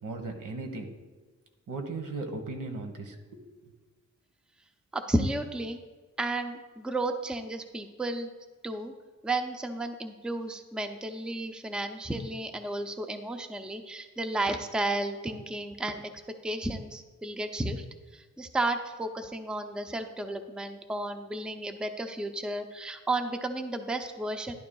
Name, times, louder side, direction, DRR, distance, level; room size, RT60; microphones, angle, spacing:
voice 1, 0.0-0.9 1.7-3.7, right 3 dB, 85° right, 4 dB, 1.4 m, -37 dB
voice 2, 4.9-5.8 6.2-8.3 8.6-8.9 9.2-16.0 16.4-17.8 18.1-24.5, right 2 dB, 5° right, 6 dB, 0.5 m, -33 dB
12.0 x 11.0 x 2.3 m, 1.3 s
wide cardioid pair, 140°, 31 cm